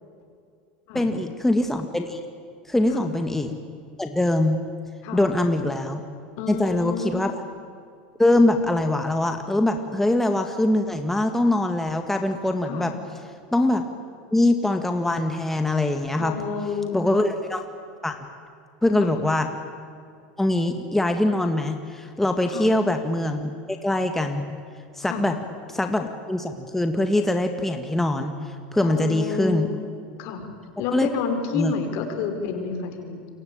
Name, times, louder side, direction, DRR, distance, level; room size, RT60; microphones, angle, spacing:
voice 1, 0.9-2.2 2.7-3.5 4.0-4.6 5.1-6.0 6.5-7.3 8.2-12.9 13.5-13.8 14.3-16.3 16.9-17.6 18.0-18.2 18.8-19.5 20.4-24.6 25.0-25.4 25.7-28.3 28.7-29.7 30.9-31.1 31.5-31.7, left 1 dB, 5° left, 5 dB, 2.0 m, -23 dB
voice 2, 6.4-7.3 12.7-12.9 16.2-17.0 19.0-19.2 22.5-22.7 25.0-25.3 28.8-33.3, left 5 dB, 60° left, 6 dB, 5.3 m, -30 dB
28.5 x 23.5 x 8.9 m, 2.3 s
hypercardioid pair, 105°, 5 cm